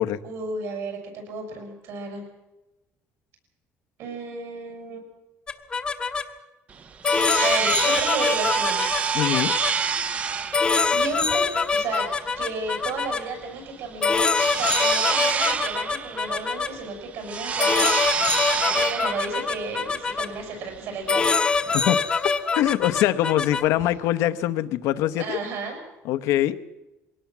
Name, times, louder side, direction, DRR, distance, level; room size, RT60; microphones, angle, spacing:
voice 1, 0.2-2.2 4.0-5.0 7.4-8.8 10.7-12.1 12.4-18.0 18.5-21.3 21.7-21.8 25.2-25.8, right 4 dB, 65° right, 5 dB, 6.7 m, -33 dB
sound 1, 5.5-6.2 7.0-9.7 10.5-13.2 14.0-16.7 17.6-20.3 21.1-23.7, left 4 dB, 20° left, 0.9 m, -24 dB
sound 2, 6.7-21.3, right 6 dB, 25° right, 0.7 m, -28 dB
voice 2, 9.1-9.5 21.7-25.4 26.0-26.6, left 13 dB, 80° left, 11 dB, 1.0 m, -23 dB
22.0 x 18.0 x 7.4 m, 1.0 s
cardioid pair, 175°, 5 cm